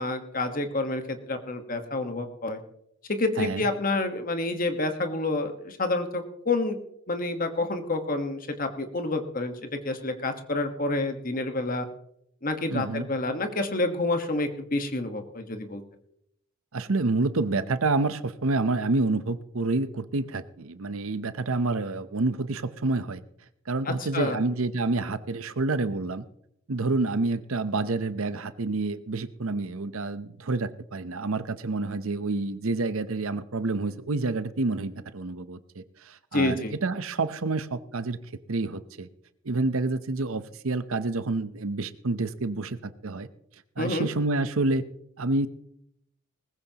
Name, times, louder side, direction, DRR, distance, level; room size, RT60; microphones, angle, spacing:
voice 1, 0.0-2.6 3.1-6.8 7.1-11.9 12.4-15.8 23.9-24.4 36.3-36.7 43.8-44.1, left 2 dB, 40° left, 7 dB, 1.4 m, -28 dB
voice 2, 12.7-13.1 16.7-23.2 23.7-26.2 26.7-38.2 38.5-39.1 39.4-43.3 43.8-44.8 45.2-45.5, right 3 dB, 75° right, 13 dB, 0.8 m, -28 dB
20.0 x 15.0 x 3.0 m, 0.75 s
head